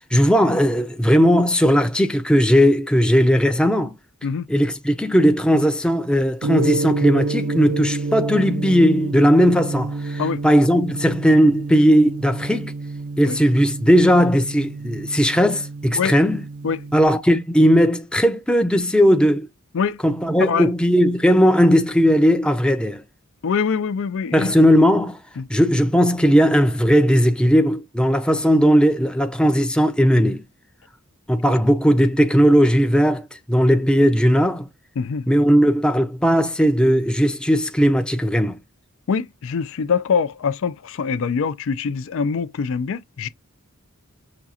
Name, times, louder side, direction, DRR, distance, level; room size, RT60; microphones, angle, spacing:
voice 1, 0.1-3.9 4.5-12.7 13.2-16.4 16.9-19.5 20.0-23.0 24.3-25.2 25.5-30.4 31.3-34.7 35.3-38.6, equal, 5° left, 0.5 m, -17 dB
Gong, 6.4-17.1, right 3 dB, 70° right, 0.4 m, -29 dB
voice 2, 23.4-24.5 25.4-25.5 31.5-31.6 35.0-35.3 39.1-43.3, left 6 dB, 60° left, 0.4 m, -24 dB
6.0 x 2.3 x 2.7 m
head